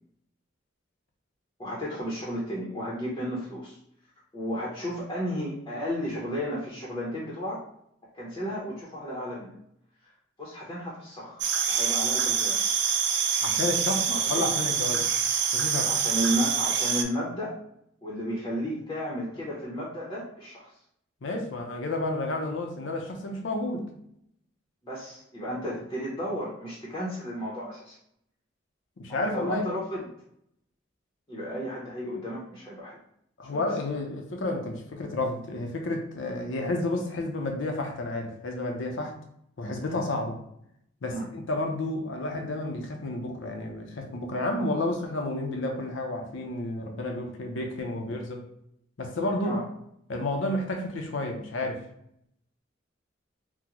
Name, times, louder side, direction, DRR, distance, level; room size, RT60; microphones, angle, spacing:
voice 1, 1.6-3.8 4.3-7.6 8.1-9.5 10.4-11.4 11.7-12.7 14.1-14.5 15.8-17.6 18.0-20.7 24.8-28.0 29.1-30.1 31.3-33.0 33.5-33.7 41.1-41.3 49.4-49.6, equal, 20° left, -6 dB, 0.7 m, -33 dB
sound 1, 11.4-17.0, right 7 dB, 60° right, 0.4 m, -26 dB
voice 2, 13.4-15.1 15.5-15.9 21.2-23.9 29.0-29.6 33.4-39.1 39.6-40.4 41.0-48.4 49.0-49.6 50.1-51.8, left 2 dB, 70° left, 2 dB, 0.6 m, -31 dB
3.7 x 2.1 x 2.9 m, 0.73 s
head